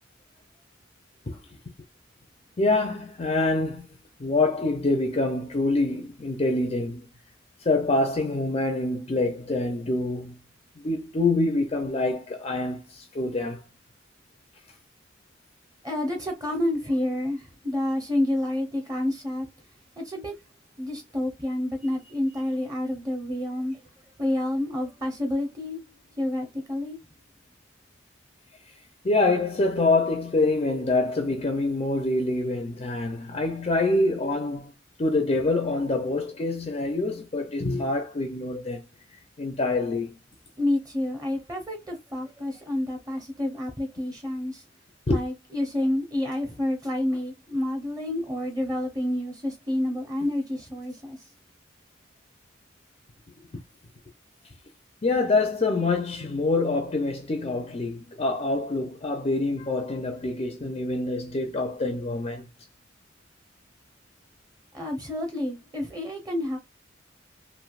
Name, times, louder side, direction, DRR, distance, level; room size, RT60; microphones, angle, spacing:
voice 1, 2.6-3.9 4.2-7.0 7.6-10.4 10.8-13.6 29.0-34.7 35.0-38.8 39.4-40.2 45.1-45.2 53.5-53.6 55.0-62.5, left 2 dB, 30° left, 0.5 m, -26 dB
voice 2, 15.8-19.5 20.0-20.3 20.8-23.8 24.2-25.8 26.2-27.0 40.6-44.6 45.1-51.2 64.7-66.6, left 1 dB, 20° right, 0.7 m, -29 dB
3.2 x 2.7 x 2.3 m
head